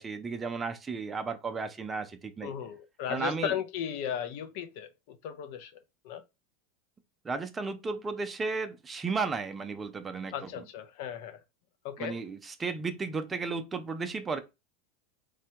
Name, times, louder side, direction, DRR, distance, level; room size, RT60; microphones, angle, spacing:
voice 1, 0.0-2.5 3.1-3.5 7.2-10.6 12.0-14.4, right 4 dB, 20° right, 0.4 m, -34 dB
voice 2, 2.4-5.7 6.0-6.2 10.3-11.4 11.8-12.2, left 9 dB, 60° left, 0.5 m, -36 dB
3.3 x 2.2 x 2.8 m
supercardioid pair, 120°, 0 cm